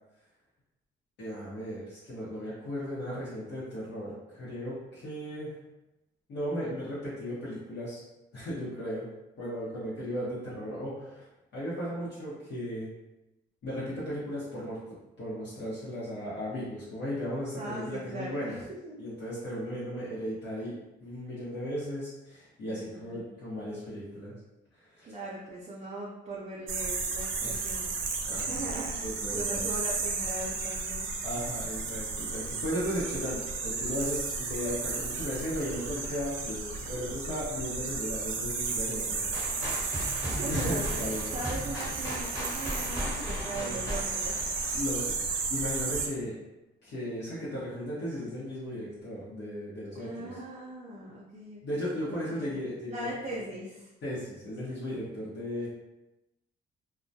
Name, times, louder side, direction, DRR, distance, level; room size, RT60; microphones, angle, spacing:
voice 1, 1.2-5.6 6.3-8.0 8.3-9.1 9.4-11.2 11.5-12.9 13.6-14.8 15.2-18.6 19.0-20.7 21.0-24.3 24.8-25.2 27.4-27.9 28.2-28.7 29.0-29.7 31.2-40.1 40.5-41.3 43.5-43.8 44.7-46.4 46.8-50.4 51.6-53.1 54.0-55.7, equal, 60° left, -9 dB, 0.8 m, -36 dB
voice 2, 17.6-18.6 18.8-19.0 22.7-23.2 25.0-27.9 28.4-31.1 40.2-44.5 50.0-51.8 52.1-52.3 52.9-53.8, right 2 dB, 35° right, -5 dB, 0.5 m, -39 dB
sound 1, 26.7-46.1, right 4 dB, 90° right, 0.4 m, -33 dB
sound 2, 39.3-45.2, equal, 15° left, 1.0 m, -37 dB
2.2 x 2.2 x 2.6 m, 0.97 s
cardioid pair, 90°, 20 cm